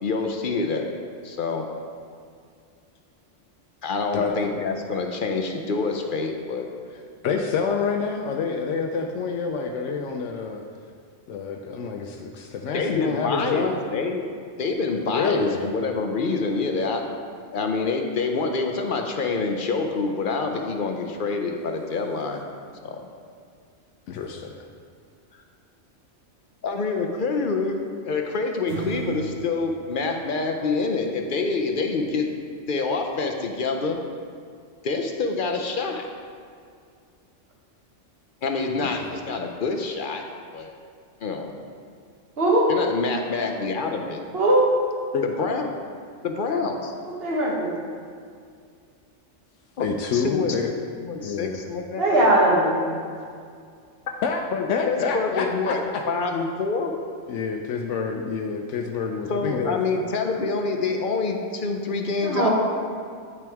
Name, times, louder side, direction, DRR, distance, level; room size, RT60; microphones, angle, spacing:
voice 1, 0.0-0.9 1.2-1.7 3.8-6.7 12.7-14.2 14.6-17.1 17.5-22.5 22.8-23.0 26.6-27.8 28.0-32.3 32.7-34.0 34.8-36.0 38.4-40.2 40.5-40.7 41.2-41.5 42.7-44.2 45.2-45.7 46.2-46.9 49.8-50.6 51.0-52.1 54.5-56.9 59.3-62.5, left 4 dB, 55° left, 3 dB, 0.7 m, -26 dB
voice 2, 7.2-10.6 11.3-13.8 15.1-15.7 24.1-24.7 38.8-38.9 45.1-45.3 49.8-50.7 51.2-51.6 54.2-54.4 54.7-56.0 57.3-59.8, left 5 dB, 80° left, 3 dB, 0.9 m, -27 dB
sound 1, 28.7-31.3, right 4 dB, 90° right, 1.4 m, -36 dB
voice 3, 42.4-42.7 44.3-44.7 47.2-47.7 52.0-52.7 62.2-62.5, right 1 dB, 55° right, -3 dB, 1.5 m, -19 dB
9.4 x 5.9 x 3.5 m, 2.2 s
omnidirectional pair, 1.2 m